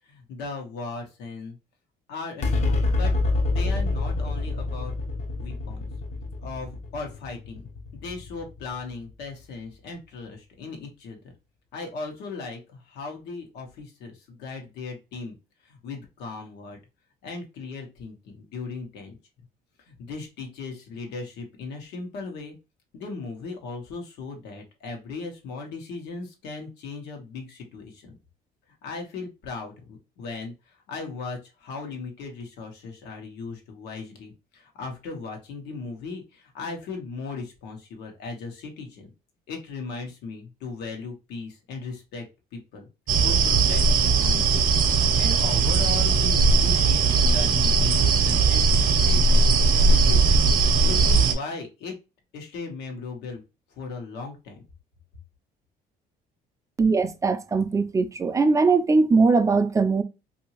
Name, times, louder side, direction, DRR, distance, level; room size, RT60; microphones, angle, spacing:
voice 1, 0.1-1.6 2.1-3.1 3.4-4.9 5.4-5.9 6.4-11.2 11.7-15.3 15.6-16.8 17.2-19.2 19.9-22.5 22.9-28.1 28.8-30.5 30.9-39.1 39.5-42.2 42.5-42.9 43.2-44.7 45.2-49.5 49.9-50.4 50.8-51.9 52.3-53.4 53.8-54.6, left 4 dB, 80° left, 1.1 m, -37 dB
sound 1, 2.4-9.1, left 3 dB, 40° left, 0.7 m, -27 dB
sound 2, 43.1-51.3, right 4 dB, 55° right, 0.7 m, -19 dB
voice 2, 56.8-60.0, right 4 dB, 20° right, 0.4 m, -20 dB
2.8 x 2.7 x 2.9 m
cardioid pair, 110°, 17 cm